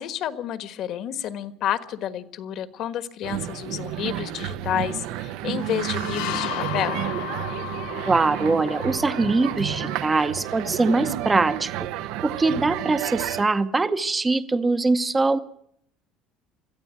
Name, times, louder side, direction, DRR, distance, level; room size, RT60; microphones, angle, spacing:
voice 1, 0.0-7.1, left 10 dB, 50° left, 11 dB, 1.4 m, -30 dB
sound 1, 3.2-13.4, right 12 dB, 75° right, 0.9 m, -31 dB
sound 2, 5.6-11.2, left 11 dB, 85° left, 4.5 m, -35 dB
voice 2, 8.1-11.9 12.2-15.4, right 3 dB, 15° right, 11 dB, 0.8 m, -22 dB
22.0 x 14.0 x 9.1 m, 0.71 s
cardioid pair, 150°, 0 cm